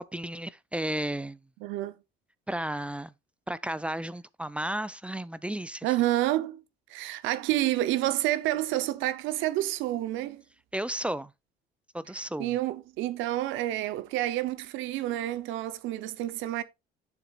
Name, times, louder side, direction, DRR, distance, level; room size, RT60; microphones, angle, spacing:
voice 1, 0.0-1.4 2.5-3.1 3.5-5.9 10.7-11.3 11.9-12.6, right 1 dB, 5° right, 0.4 m, -33 dB
voice 2, 1.6-1.9 5.8-6.6 6.9-10.4 12.4-16.6, right 14 dB, 85° right, 0.9 m, -29 dB
11.0 x 7.0 x 2.5 m
cardioid pair, 130°, 20 cm